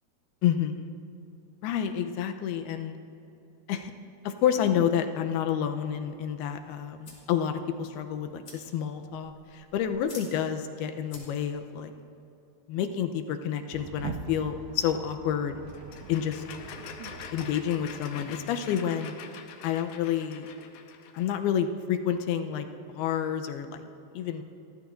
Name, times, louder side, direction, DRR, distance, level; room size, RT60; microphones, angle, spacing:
voice 1, 0.4-0.9 1.6-3.0 3.7-3.9 4.3-11.9 12.7-15.6 16.1-16.4 17.3-19.1 19.6-20.5 21.1-22.7 22.9-23.8 24.1-24.4, left 9 dB, 90° left, 6 dB, 2.7 m, -29 dB
sound 1, 5.9-11.7, left 3 dB, 40° left, 2.9 m, -52 dB
sound 2, 13.7-18.6, right 7 dB, 80° right, 2.0 m, -43 dB
sound 3, 15.7-21.4, left 7 dB, 75° left, 2.3 m, -45 dB
28.5 x 13.5 x 2.6 m, 2.8 s
omnidirectional pair, 4.5 m